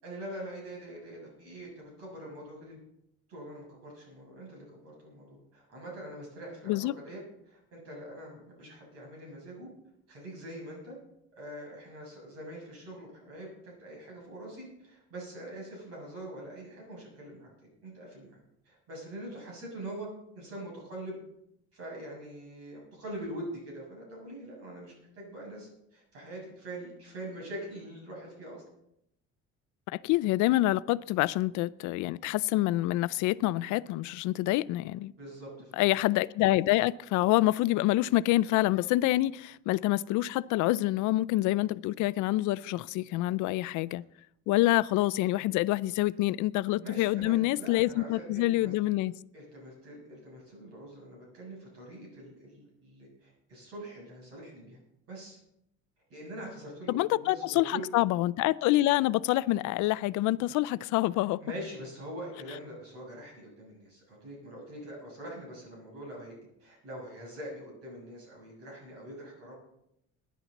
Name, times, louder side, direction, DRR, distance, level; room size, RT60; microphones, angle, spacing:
voice 1, 0.0-2.8 3.3-7.2 7.5-9.7 10.1-11.0 11.3-17.5 17.8-18.4 18.7-20.1 20.3-21.2 21.7-28.6 35.2-35.8 46.8-49.0 49.3-54.8 55.1-55.4 56.1-57.9 61.4-69.5, right 1 dB, 55° right, 7.1 m, -44 dB
voice 2, 29.9-35.1 35.7-44.0 44.5-49.1 56.9-61.4, left 17 dB, 90° left, 0.5 m, -27 dB
19.5 x 10.5 x 4.1 m
cardioid pair, 180°, 29 cm